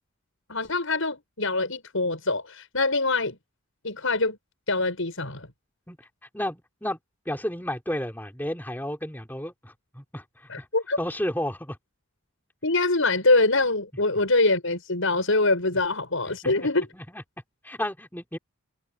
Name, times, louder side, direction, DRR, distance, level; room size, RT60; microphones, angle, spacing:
voice 1, 0.5-3.4 3.8-4.4 4.7-5.5 10.5-11.0 12.6-16.9, left 2 dB, 70° left, 6.1 m, -24 dB
voice 2, 6.3-7.0 7.3-10.7 11.0-11.8 16.3-17.2 17.6-18.4, left 1 dB, 10° left, 3.6 m, -32 dB
head